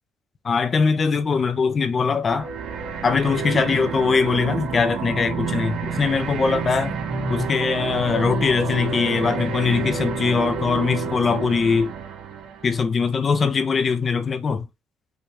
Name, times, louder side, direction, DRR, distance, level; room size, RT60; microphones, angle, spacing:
voice 1, 0.4-2.5 3.0-7.0 7.3-11.9 12.6-14.7, left 5 dB, 40° left, 1.3 m, -21 dB
sound 1, 2.3-12.8, right 5 dB, 75° right, 2.8 m, -29 dB
5.6 x 4.6 x 5.0 m
cardioid pair, 105°, 0 cm